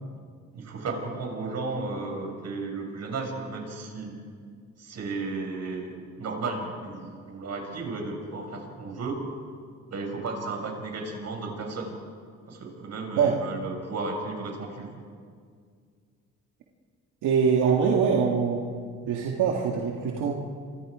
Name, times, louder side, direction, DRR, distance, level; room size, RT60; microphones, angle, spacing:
voice 1, 0.5-4.2 4.8-9.2 9.9-12.0 12.5-15.0, right 3 dB, 60° right, 2 dB, 6.4 m, -34 dB
voice 2, 17.2-18.6 19.1-20.4, right 6 dB, 90° right, -1 dB, 2.2 m, -23 dB
29.0 x 25.0 x 5.1 m, 2.1 s
cardioid pair, 90°, 30 cm